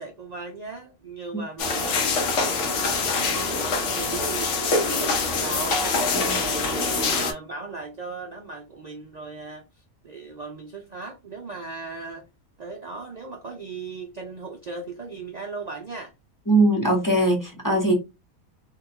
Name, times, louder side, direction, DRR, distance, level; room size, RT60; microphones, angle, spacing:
voice 1, 0.0-5.8 6.2-9.7 10.0-12.3 12.6-16.1, right 4 dB, 75° right, 0.3 m, -38 dB
sound 1, 1.6-7.3, left 3 dB, 60° left, 1.0 m, -24 dB
voice 2, 16.5-17.9, right 2 dB, 15° left, 0.7 m, -21 dB
3.5 x 2.3 x 2.7 m
omnidirectional pair, 1.5 m